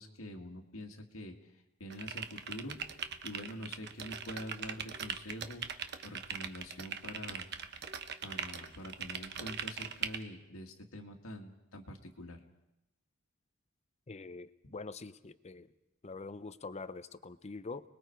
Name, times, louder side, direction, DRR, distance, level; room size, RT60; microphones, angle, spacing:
voice 1, 0.0-1.5 1.8-7.5 8.2-12.4, equal, 90° left, 2 dB, 2.1 m, -46 dB
sound 1, 1.9-10.2, right 7 dB, 55° right, 1.0 m, -40 dB
voice 2, 14.1-15.7 16.0-17.8, left 3 dB, 30° left, 14 dB, 0.7 m, -44 dB
30.0 x 20.5 x 4.6 m, 0.90 s
head